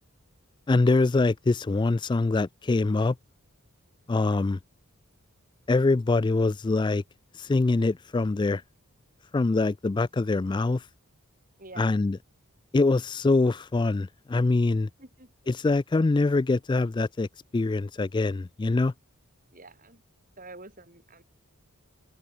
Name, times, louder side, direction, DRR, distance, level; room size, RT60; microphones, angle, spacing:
voice 1, 0.7-3.2 4.1-4.6 5.7-7.0 7.3-8.6 9.3-10.9 11.8-12.2 12.7-14.9 15.5-17.3 17.5-18.9, left 3 dB, 20° left, 0.3 m, -24 dB
voice 2, 11.6-11.9 14.7-15.6 19.5-20.0 20.4-21.2, right 2 dB, 40° right, 7.6 m, -48 dB
open air
head